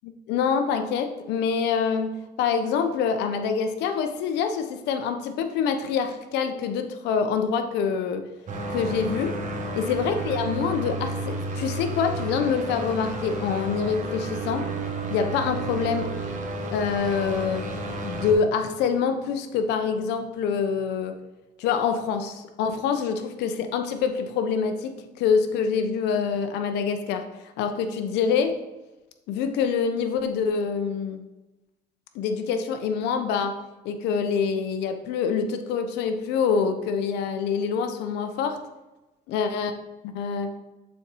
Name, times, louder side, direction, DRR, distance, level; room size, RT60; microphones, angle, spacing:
voice 1, 0.0-8.2 8.7-9.3 9.7-14.7 15.1-16.1 16.7-17.6 18.0-21.2 21.6-27.2 27.6-28.6 29.3-31.2 32.1-33.5 33.8-38.6 39.3-39.7 40.0-40.5, left 6 dB, 90° left, 7 dB, 0.8 m, -26 dB
sound 1, 8.5-18.3, right 2 dB, 45° right, 1.3 m, -31 dB
7.1 x 4.3 x 4.6 m, 1.1 s
cardioid pair, 110°, 17 cm